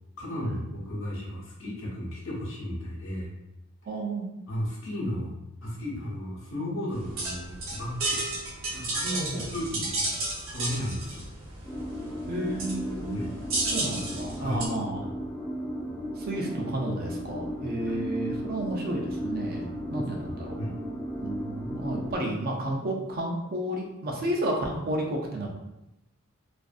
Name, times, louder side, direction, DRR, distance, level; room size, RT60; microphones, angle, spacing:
voice 1, 0.2-3.3 4.5-5.4 5.6-8.3 8.7-10.1 10.5-11.3 13.1-13.3 14.4-14.6 17.9-18.0 19.9-20.1 20.6-20.7, equal, 65° left, -4 dB, 0.9 m, -34 dB
voice 2, 3.8-4.3 9.1-9.5 12.3-13.2 13.7-15.1 16.2-19.6 19.9-20.6 21.2-25.5, right 1 dB, 45° right, 0 dB, 0.5 m, -32 dB
sound 1, 6.9-14.7, right 2 dB, 70° right, 0.8 m, -33 dB
sound 2, 11.6-22.1, equal, 5° left, 0.5 m, -35 dB
2.5 x 2.5 x 2.3 m, 0.90 s
head